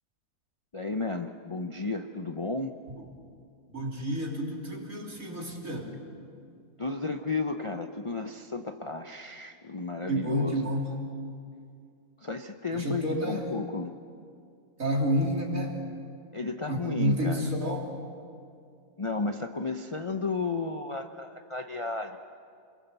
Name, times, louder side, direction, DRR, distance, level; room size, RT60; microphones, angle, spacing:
voice 1, 0.7-2.7 6.8-10.7 12.2-13.9 16.3-17.5 19.0-22.2, left 3 dB, 30° left, 6 dB, 0.6 m, -33 dB
voice 2, 3.7-6.0 10.1-11.0 12.7-13.5 14.8-15.8 16.7-17.9, equal, 55° right, -1 dB, 3.8 m, -30 dB
29.0 x 22.0 x 6.9 m, 2.3 s
omnidirectional pair, 1.7 m